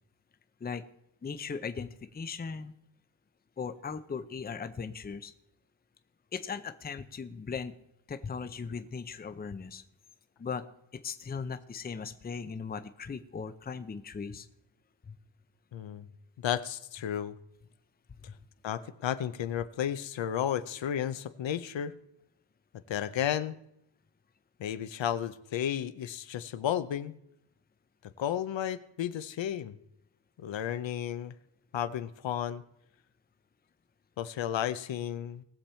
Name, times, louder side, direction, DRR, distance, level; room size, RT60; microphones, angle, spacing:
voice 1, 1.2-2.7 3.6-5.3 6.3-7.7 8.1-9.8 10.4-10.7 10.9-14.5 15.1-15.2 18.2-18.4, left 5 dB, 20° left, 10 dB, 0.6 m, -38 dB
voice 2, 15.7-16.1 16.4-17.3 18.6-21.9 22.9-23.6 24.6-27.2 28.2-29.8 30.4-31.3 31.7-32.6 34.2-35.4, left 10 dB, 75° left, 13 dB, 0.8 m, -33 dB
19.0 x 7.2 x 4.4 m, 0.77 s
wide cardioid pair, 150°, 45 cm